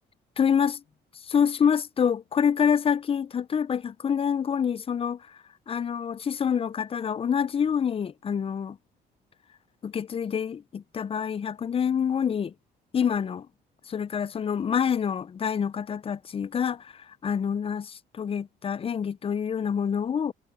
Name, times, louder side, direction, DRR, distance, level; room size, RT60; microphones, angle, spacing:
voice 1, 0.4-0.8 1.2-5.3 5.7-8.8 9.8-12.5 12.9-13.4 13.9-20.3, left 7 dB, 30° left, 0.5 m, -26 dB
cardioid pair, 85°, 18 cm